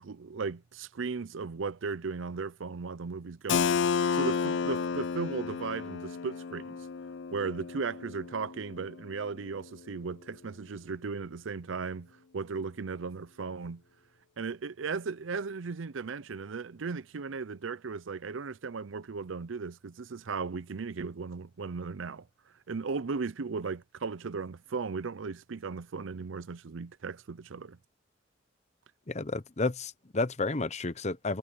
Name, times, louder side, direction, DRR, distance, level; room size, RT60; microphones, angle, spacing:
voice 1, 0.0-3.8 4.1-6.8 7.3-13.8 14.4-22.3 22.7-27.8, right 4 dB, 80° right, 0.6 m, -36 dB
Keyboard (musical), 3.5-9.0, left 6 dB, 65° left, 0.4 m, -31 dB
voice 2, 29.1-31.4, left 3 dB, 35° left, 0.9 m, -31 dB
head